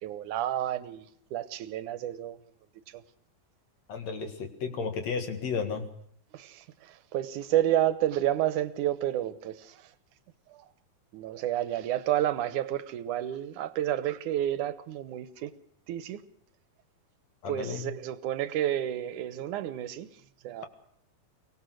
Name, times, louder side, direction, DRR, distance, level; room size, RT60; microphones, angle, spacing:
voice 1, 0.0-1.1 1.3-2.4 2.9-3.0 6.3-9.8 10.5-10.7 11.1-15.5 15.9-16.2 17.5-20.1 20.4-20.7, right 12 dB, 75° right, 15 dB, 2.4 m, -30 dB
voice 2, 3.9-5.8 17.4-17.9, left 5 dB, 60° left, 7 dB, 2.9 m, -33 dB
24.0 x 18.5 x 6.4 m, 0.63 s
omnidirectional pair, 3.7 m